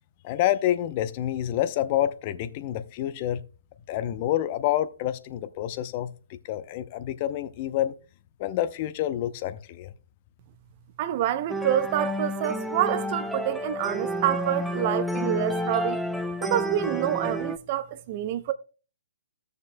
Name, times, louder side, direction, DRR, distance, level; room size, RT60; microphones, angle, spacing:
voice 1, 0.2-3.4 3.9-7.9 8.4-9.9, left 12 dB, 40° left, 0.6 m, -28 dB
voice 2, 11.0-16.0 16.4-18.5, right 12 dB, 40° right, 0.6 m, -27 dB
sound 1, 11.5-17.6, equal, ahead, 0.5 m, -30 dB
15.0 x 6.7 x 2.2 m
hypercardioid pair, 135°, 0 cm